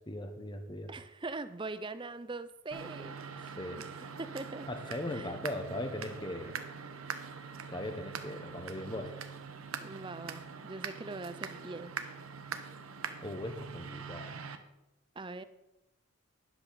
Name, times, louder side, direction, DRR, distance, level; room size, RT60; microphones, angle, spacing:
voice 1, 0.1-0.9 3.4-3.8 4.7-6.6 7.7-9.1 13.2-14.3, left 1 dB, 20° left, 5 dB, 1.1 m, -39 dB
voice 2, 0.9-3.4 3.8-3.9 4.2-4.7 5.1-5.3 9.8-11.9 15.2-15.4, right 3 dB, 20° right, 13 dB, 0.5 m, -42 dB
sound 1, 2.7-14.6, right 6 dB, 80° right, 1.0 m, -43 dB
12.5 x 10.5 x 4.1 m, 0.93 s
head